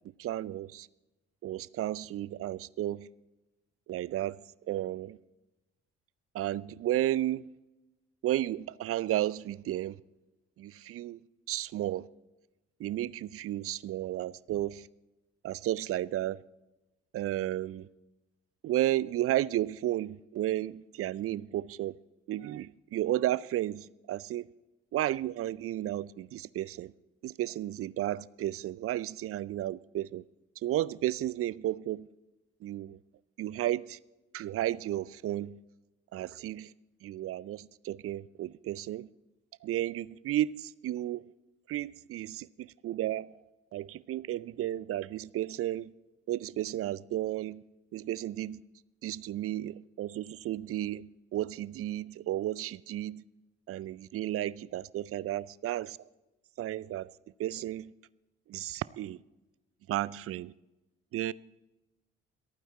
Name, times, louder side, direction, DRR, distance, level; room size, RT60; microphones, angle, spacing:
voice 1, 0.2-0.9 1.4-3.1 3.9-5.2 6.3-7.5 8.2-10.0 10.6-11.2 11.5-12.1 12.8-14.9 15.4-16.4 17.1-17.9 18.6-22.0 22.3-24.5 24.9-26.9 27.2-30.2 30.6-32.1 32.6-33.0 33.4-34.0 34.3-35.6 36.1-36.7 37.0-39.1 39.6-41.3 41.7-43.4 43.7-45.9 46.3-47.6 47.9-48.6 49.0-53.2 53.7-56.1 56.6-57.1 57.4-57.9 58.5-59.2 59.9-60.5 61.1-61.3, right 13 dB, 45° right, 0.5 m, -33 dB
24.0 x 9.2 x 4.2 m
figure-of-eight pair, 45°, 32 cm